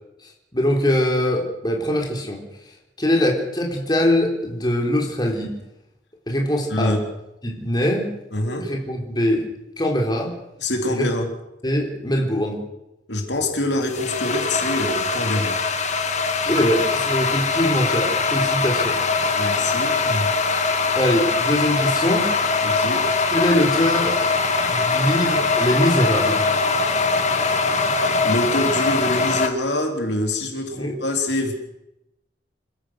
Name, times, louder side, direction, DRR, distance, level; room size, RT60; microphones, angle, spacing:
voice 1, 0.2-2.4 3.0-5.5 6.3-7.0 7.4-8.1 8.6-9.5 9.8-10.3 10.9-11.1 11.6-12.6 16.5-19.0 20.9-22.3 23.3-24.2 24.6-26.4 30.7-30.9, left 1 dB, 25° left, 0 dB, 3.9 m, -22 dB
voice 2, 6.7-7.1 8.3-8.7 10.6-11.3 13.1-15.6 19.4-20.3 22.6-23.0 28.2-31.5, left 1 dB, 65° left, 3 dB, 3.7 m, -25 dB
sound 1, 13.3-29.5, left 4 dB, 40° left, 1.9 m, -22 dB
27.5 x 16.0 x 6.5 m, 0.88 s
head